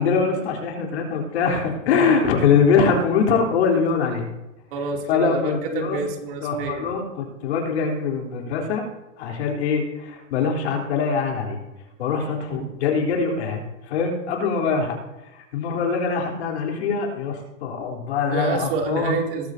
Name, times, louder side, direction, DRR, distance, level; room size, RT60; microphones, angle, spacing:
voice 1, 0.0-4.3 5.1-6.0 6.4-8.8 9.2-11.6 12.0-15.0 15.5-19.2, left 5 dB, 60° left, 0 dB, 3.6 m, -23 dB
voice 2, 4.7-6.9 12.5-12.7 18.3-19.5, right 4 dB, 45° right, 1 dB, 2.8 m, -28 dB
21.0 x 12.0 x 2.7 m, 0.97 s
supercardioid pair, 165°, 38 cm